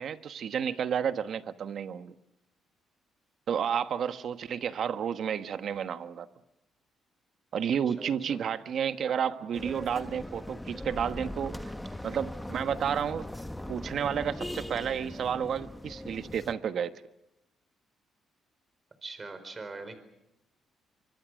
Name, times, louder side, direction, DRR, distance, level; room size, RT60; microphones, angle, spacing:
voice 1, 0.0-2.1 3.5-6.3 7.5-11.7 12.0-13.3 13.7-16.9, right 8 dB, 60° right, 10 dB, 1.3 m, -31 dB
voice 2, 7.9-8.4 19.0-20.0, right 3 dB, 30° right, 11 dB, 4.6 m, -42 dB
sound 1, 9.5-16.5, left 1 dB, 5° left, 1.1 m, -40 dB
25.0 x 24.5 x 6.4 m, 0.85 s
cardioid pair, 90°, 0 cm